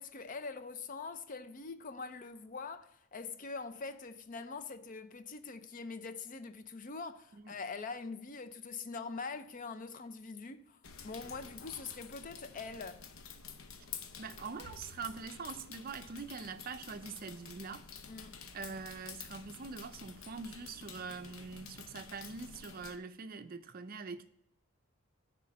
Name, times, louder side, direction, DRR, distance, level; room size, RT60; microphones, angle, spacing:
voice 1, 0.0-13.0 18.1-18.4, left 4 dB, 40° left, 0.5 m, -44 dB
sound 1, 10.8-23.0, left 6 dB, 80° left, 0.7 m, -50 dB
voice 2, 14.2-17.8 18.5-24.3, right 5 dB, 45° right, 0.5 m, -44 dB
9.8 x 3.7 x 5.4 m
head